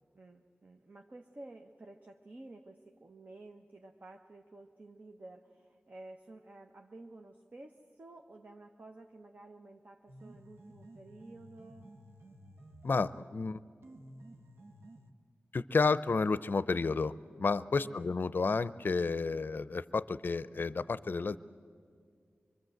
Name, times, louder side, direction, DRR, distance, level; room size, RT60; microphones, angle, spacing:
voice 1, 0.1-11.9 17.8-18.1, right 2 dB, 45° right, 3 dB, 1.0 m, -52 dB
sound 1, 10.1-13.3 13.8-15.1, right 1 dB, 90° right, 1.5 m, -54 dB
voice 2, 12.8-13.6 15.5-17.1 17.4-21.4, left 4 dB, 55° left, 16 dB, 0.6 m, -31 dB
24.0 x 23.5 x 7.9 m, 2.1 s
wide cardioid pair, 80°, 4 cm